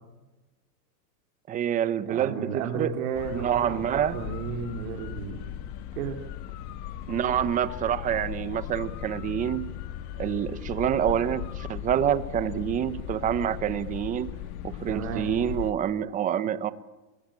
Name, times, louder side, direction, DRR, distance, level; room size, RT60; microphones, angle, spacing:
voice 1, 1.5-2.9 3.3-4.2 7.1-9.8 10.2-14.3 14.6-16.7, right 10 dB, 15° right, 15 dB, 0.8 m, -27 dB
voice 2, 2.1-5.5 6.0-6.2 14.9-15.3, right 7 dB, 60° right, 2 dB, 3.6 m, -33 dB
sound 1, 3.1-15.7, left 11 dB, 35° left, 1.4 m, -37 dB
25.5 x 20.0 x 8.9 m, 1.1 s
supercardioid pair, 165°, 46 cm